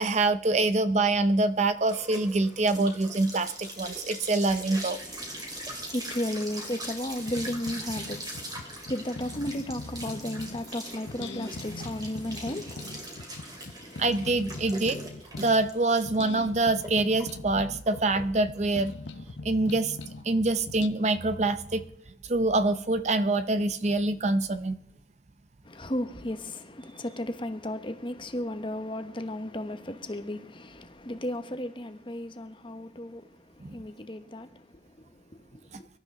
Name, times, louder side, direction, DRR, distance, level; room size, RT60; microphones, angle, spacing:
voice 1, 0.0-5.0 14.0-15.0 15.4-18.9 19.4-20.0 20.2-21.8 22.3-24.8 33.6-33.8, right 2 dB, 40° right, 0.6 m, -25 dB
sound 1, 0.9-19.9, right 1 dB, 20° right, 2.8 m, -42 dB
voice 2, 5.0-14.1 25.6-35.9, left 1 dB, 30° left, 1.1 m, -35 dB
sound 2, 7.2-10.7 11.1-15.7 16.1-20.3 20.7-20.9, left 2 dB, 80° left, 0.8 m, -41 dB
24.0 x 12.5 x 3.8 m
head